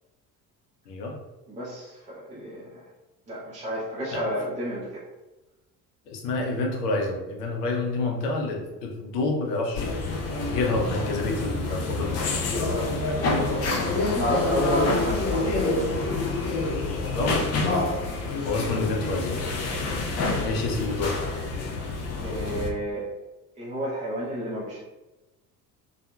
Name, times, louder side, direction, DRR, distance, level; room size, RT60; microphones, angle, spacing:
voice 1, 1.5-2.8 3.3-5.1 12.1-15.8 20.2-20.5 22.2-23.1 23.6-24.8, equal, 15° right, -7 dB, 0.6 m, -31 dB
voice 2, 6.1-9.9 10.5-12.2 17.1-17.4 18.4-19.4 20.4-21.3, left 2 dB, 70° left, 1 dB, 0.7 m, -28 dB
sound 1, 9.7-22.7, left 3 dB, 35° left, 0.4 m, -27 dB
2.6 x 2.4 x 2.3 m, 1.1 s
figure-of-eight pair, 60°, 50 cm